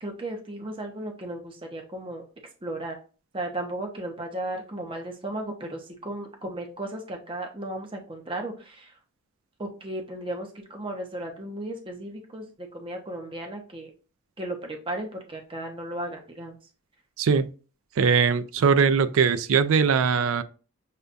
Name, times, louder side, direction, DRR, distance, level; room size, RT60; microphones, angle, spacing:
voice 1, 0.0-2.2 2.6-3.0 3.3-8.9 9.6-13.9 14.4-16.6, right 1 dB, 25° right, 0.6 m, -35 dB
voice 2, 17.2-17.5 18.0-20.4, right 5 dB, 70° right, 0.4 m, -21 dB
6.5 x 2.2 x 2.5 m
head